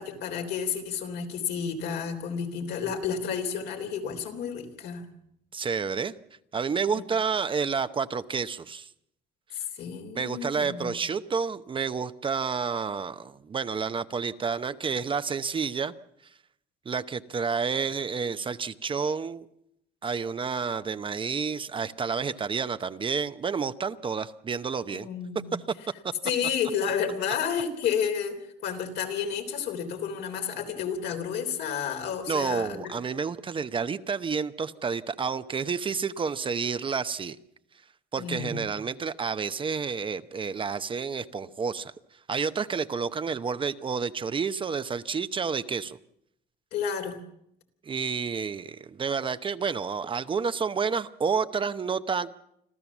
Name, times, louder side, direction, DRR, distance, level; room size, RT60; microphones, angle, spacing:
voice 1, 0.0-5.0 6.9-7.0 9.5-10.9 24.9-25.6 26.2-28.4 28.6-32.9 38.2-38.6 46.7-47.2, left 7 dB, 80° left, 3 dB, 3.5 m, -31 dB
voice 2, 5.5-6.1 6.5-8.9 10.1-15.9 16.9-19.5 20.0-25.1 32.3-37.4 38.1-41.9 42.3-46.0 47.8-52.3, right 5 dB, 30° right, 12 dB, 0.8 m, -30 dB
26.0 x 14.5 x 7.2 m, 0.77 s
cardioid pair, 110°, 17 cm